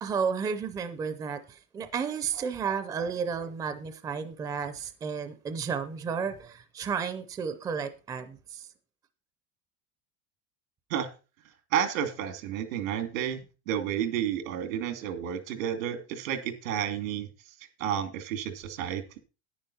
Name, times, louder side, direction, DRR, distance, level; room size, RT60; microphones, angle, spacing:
voice 1, 0.0-8.7, right 6 dB, 10° right, 0.5 m, -32 dB
voice 2, 11.7-17.3 17.8-19.0, right 9 dB, 90° right, 2.8 m, -31 dB
10.0 x 10.0 x 4.2 m
cardioid pair, 175°, 39 cm